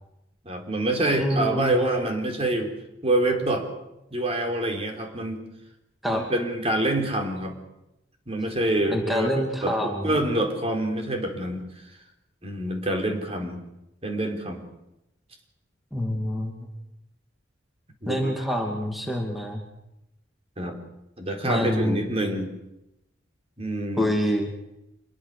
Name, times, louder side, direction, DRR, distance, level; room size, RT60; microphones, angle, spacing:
voice 1, 0.4-2.7 3.0-3.6 4.1-5.4 6.1-7.5 8.3-9.3 9.6-11.6 12.4-13.6 14.0-14.6 18.0-18.3 20.6-20.8 21.2-22.5 23.6-24.1, right 1 dB, 35° right, 4 dB, 3.9 m, -26 dB
voice 2, 1.2-1.9 6.0-6.2 8.9-10.2 15.9-16.6 18.1-19.6 21.4-22.0 24.0-24.5, equal, ahead, 1 dB, 2.5 m, -26 dB
26.0 x 22.0 x 6.8 m, 0.88 s
head